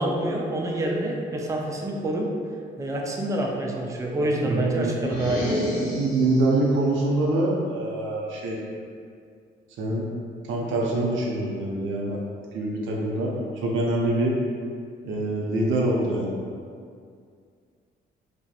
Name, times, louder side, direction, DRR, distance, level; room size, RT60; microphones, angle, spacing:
voice 1, 0.0-2.3 2.8-5.5, right 1 dB, 15° right, 0 dB, 0.3 m, -27 dB
voice 2, 4.2-5.0 5.9-8.6 9.8-10.1 10.4-14.4 15.0-16.4, right 2 dB, 80° right, -2 dB, 0.5 m, -25 dB
sound 1, 5.0-6.6, equal, 50° left, 0.7 m, -29 dB
2.3 x 2.1 x 2.7 m, 2.2 s
cardioid pair, 90°, 20 cm